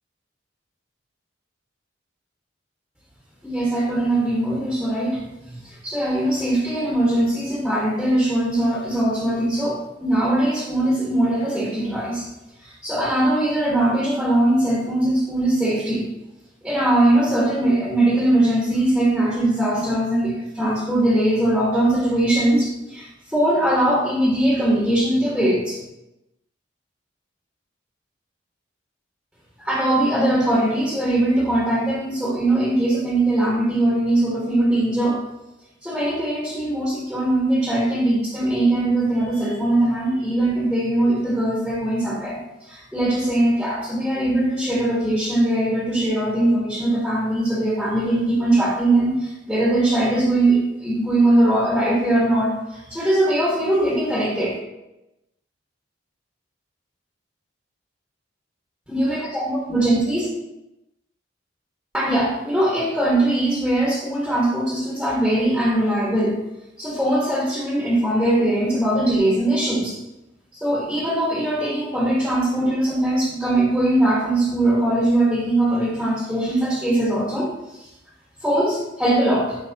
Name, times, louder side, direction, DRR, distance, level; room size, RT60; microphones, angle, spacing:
voice 1, 3.4-12.3 12.6-16.1 16.6-25.8 29.6-35.2 35.8-42.4 42.7-54.6 58.9-60.3 61.9-66.4 66.8-69.9 70.5-77.9 78.4-79.6, right 1 dB, ahead, -6 dB, 1.7 m, -21 dB
11.5 x 5.3 x 3.0 m, 0.94 s
head